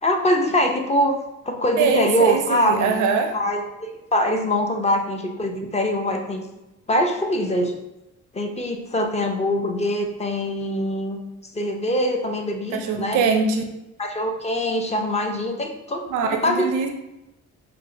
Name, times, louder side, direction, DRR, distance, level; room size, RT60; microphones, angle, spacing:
voice 1, 0.0-1.2 1.5-3.0 3.3-6.4 6.9-7.7 8.3-11.2 11.5-13.2 14.0-16.7, equal, 20° left, 3 dB, 0.5 m, -23 dB
voice 2, 1.8-3.4 12.7-13.7 16.1-16.9, right 5 dB, 85° right, 5 dB, 0.5 m, -22 dB
4.6 x 2.1 x 2.5 m, 0.94 s
cardioid pair, 90°, 30 cm